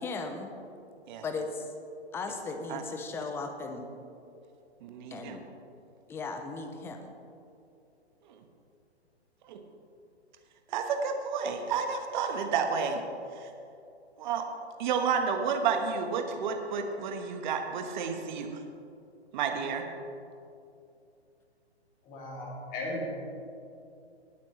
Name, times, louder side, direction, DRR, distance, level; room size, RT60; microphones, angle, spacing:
voice 1, 0.0-0.5 1.2-1.7 2.1-3.9 5.1-5.4 6.1-7.1, left 3 dB, 5° left, 6 dB, 0.5 m, -37 dB
voice 2, 4.8-5.4 9.5-9.6 10.7-13.0 13.4-13.5 14.2-14.4 14.8-18.6 19.3-19.8, right 6 dB, 45° right, 5 dB, 1.4 m, -31 dB
voice 3, 22.1-23.1, left 1 dB, 25° left, -4 dB, 2.8 m, -36 dB
19.0 x 9.1 x 3.3 m, 2.6 s
hypercardioid pair, 135°, 33 cm